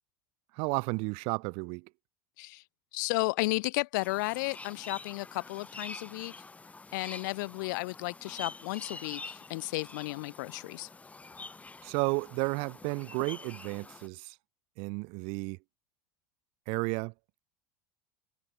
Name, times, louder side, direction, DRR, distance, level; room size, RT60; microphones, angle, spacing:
voice 1, 0.5-1.9 11.8-14.3 14.8-15.6 16.7-17.1, right 32 dB, 65° right, 3.4 m, -32 dB
voice 2, 2.9-6.3 6.9-10.9, left 23 dB, 75° left, 3.1 m, -33 dB
sound 1, 4.0-14.1, left 3 dB, 15° left, 2.2 m, -46 dB
supercardioid pair, 110°, 10 cm